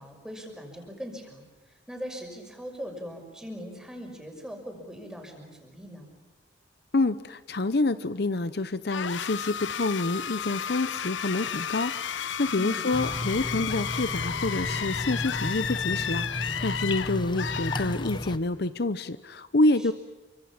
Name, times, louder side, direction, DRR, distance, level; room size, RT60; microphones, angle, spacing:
voice 1, 0.0-6.1 12.5-12.9 19.8-19.9, equal, 5° right, 3 dB, 6.0 m, -41 dB
voice 2, 6.9-19.9, left 2 dB, 60° left, 13 dB, 0.8 m, -27 dB
sound 1, 8.9-18.4, left 8 dB, 85° left, 0.9 m, -33 dB
sound 2, 12.9-18.4, left 1 dB, 25° left, 1.2 m, -34 dB
29.5 x 25.0 x 7.3 m, 1.2 s
head